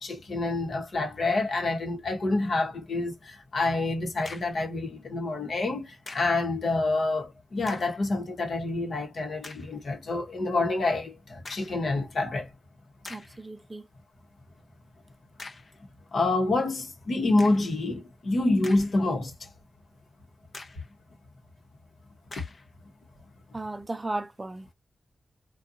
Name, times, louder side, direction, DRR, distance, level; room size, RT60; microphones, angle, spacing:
voice 1, 0.0-12.5 16.1-19.5 22.4-22.5, left 2 dB, 70° left, 1.0 m, -27 dB
sound 1, 4.2-4.7 6.1-6.4 7.6-8.0 8.6-8.7 9.4-9.7 11.4-11.8 12.5-12.6 13.0-13.4 15.4-15.8 17.4-17.7 18.4-19.2 19.6-19.7 20.5-20.9 22.3-22.7, left 3 dB, 50° left, 0.6 m, -45 dB
voice 2, 13.1-13.8 23.5-24.7, right 2 dB, 25° right, 0.4 m, -35 dB
2.6 x 2.3 x 2.5 m
cardioid pair, 80°, 0 cm